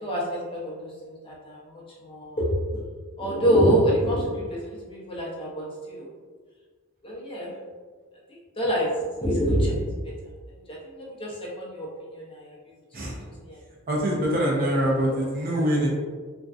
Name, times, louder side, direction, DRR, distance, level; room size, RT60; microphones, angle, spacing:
voice 1, 0.0-2.5 2.7-2.8 3.2-6.1 7.0-7.5 8.6-8.9 9.2-9.7 10.7-11.9 12.1-12.6 13.4-13.6 15.1-15.2, equal, 25° left, -5 dB, 0.6 m, -26 dB
voice 2, 13.9-15.9, equal, 40° right, -3 dB, 0.6 m, -24 dB
2.5 x 2.1 x 2.3 m, 1.5 s
head